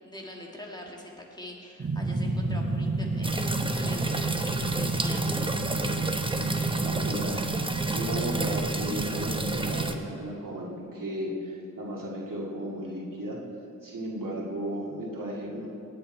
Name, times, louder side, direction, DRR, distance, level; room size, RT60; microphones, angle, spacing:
voice 1, 0.0-5.4, left 1 dB, 15° left, -1 dB, 1.9 m, -43 dB
sound 1, 1.8-9.9, right 3 dB, 45° right, 1.0 m, -30 dB
sound 2, 3.2-10.0, right 1 dB, 15° right, 0.9 m, -33 dB
voice 2, 6.8-7.5 7.9-13.4 13.8-15.7, equal, 80° right, -3 dB, 2.2 m, -35 dB
17.5 x 8.6 x 4.5 m, 2.7 s
wide cardioid pair, 60°, 32 cm